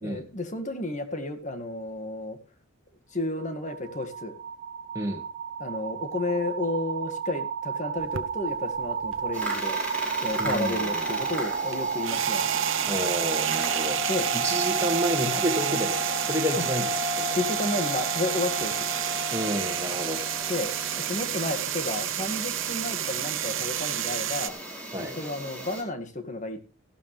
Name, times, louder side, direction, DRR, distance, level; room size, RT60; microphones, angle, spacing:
voice 1, 0.0-2.4 3.1-4.3 5.6-9.8 10.2-12.5 13.5-13.6 14.1-14.2 16.6-16.7 17.4-18.7 20.5-20.7 21.1-24.5 25.0-26.6, left 2 dB, 35° left, 8 dB, 2.0 m, -32 dB
sound 1, 3.2-21.1, right 3 dB, 35° right, 2.5 m, -32 dB
sound 2, 8.0-9.8 10.1-24.5, right 11 dB, 70° right, 0.9 m, -30 dB
sound 3, 9.3-25.8, right 1 dB, 5° left, 4.6 m, -39 dB
voice 2, 10.4-11.1 12.9-14.0 14.3-17.4 19.3-20.2 24.9-25.2, equal, 15° right, 0 dB, 2.1 m, -30 dB
15.0 x 12.0 x 3.3 m, 0.34 s
head